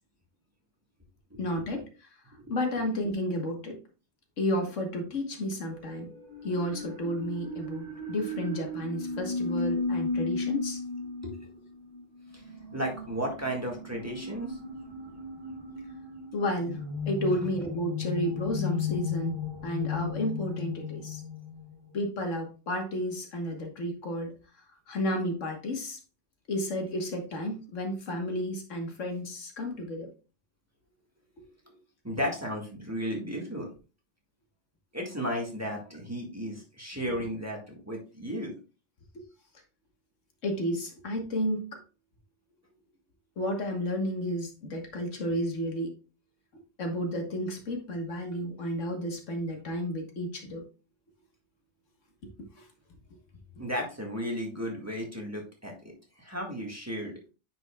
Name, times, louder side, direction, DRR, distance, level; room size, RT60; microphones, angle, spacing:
voice 1, 1.4-2.1 2.5-3.8 4.4-6.1 6.4-10.8 16.3-19.4 19.6-21.2 21.9-24.3 24.9-26.0 26.5-30.1 40.4-41.8 43.4-45.9 46.8-50.6 52.6-52.7, equal, 85° left, 3 dB, 1.8 m, -32 dB
sound 1, 5.7-22.0, left 4 dB, 80° right, 2.1 m, -35 dB
voice 2, 12.7-14.6 31.6-31.8 32.0-33.7 34.9-38.5 53.6-55.9 56.2-57.1, equal, 15° right, 0 dB, 1.7 m, -34 dB
9.3 x 5.4 x 2.3 m, 0.33 s
omnidirectional pair, 1.2 m